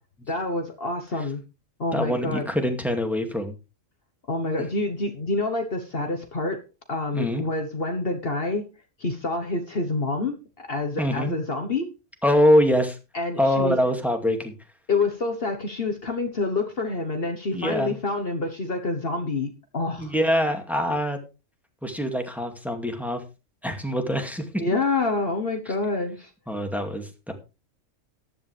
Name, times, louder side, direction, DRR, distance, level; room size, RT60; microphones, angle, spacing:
voice 1, 0.3-1.4 1.8-2.5 4.3-6.6 6.9-8.6 9.0-11.9 13.1-13.7 14.9-20.1 24.6-26.3, left 3 dB, 50° left, 5 dB, 1.5 m, -27 dB
voice 2, 1.9-3.5 7.1-7.4 11.0-11.3 12.2-13.0 13.4-14.5 17.5-17.9 20.0-21.2 21.8-23.2 23.6-24.5 26.5-27.3, equal, ahead, 4 dB, 2.3 m, -24 dB
14.5 x 11.0 x 3.4 m, 0.29 s
omnidirectional pair, 1.3 m